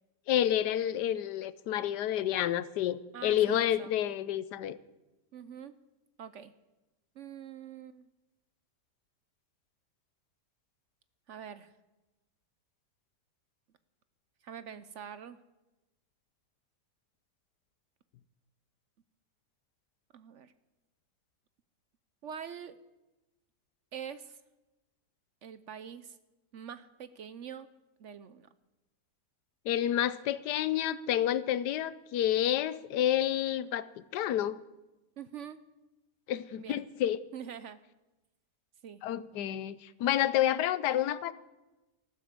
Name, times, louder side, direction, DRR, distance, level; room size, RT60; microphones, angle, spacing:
voice 1, 0.3-4.8 29.6-34.6 36.3-37.2 39.0-41.3, left 11 dB, 75° left, 16 dB, 1.3 m, -29 dB
voice 2, 3.1-3.9 5.3-5.7 6.2-6.5 7.2-8.1 11.3-11.7 14.4-15.4 20.1-20.5 22.2-22.7 23.9-24.4 25.4-26.2 26.5-27.7 28.0-28.5 35.2-35.6 36.6-36.9 37.3-37.8 38.8-39.0, right 8 dB, 60° right, 13 dB, 0.8 m, -44 dB
14.5 x 12.0 x 7.4 m, 1.0 s
omnidirectional pair, 1.8 m